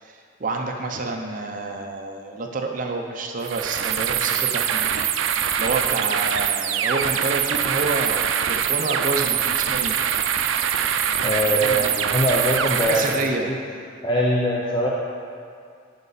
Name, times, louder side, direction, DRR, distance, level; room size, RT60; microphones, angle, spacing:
voice 1, 0.0-10.0 11.4-12.0 12.8-13.5, right 3 dB, 45° right, 3 dB, 0.6 m, -29 dB
sound 1, 3.4-13.3, right 8 dB, 90° right, 0.4 m, -23 dB
voice 2, 11.2-13.6 14.0-14.9, equal, 25° left, -4 dB, 0.6 m, -22 dB
11.0 x 5.1 x 4.0 m, 2.2 s
head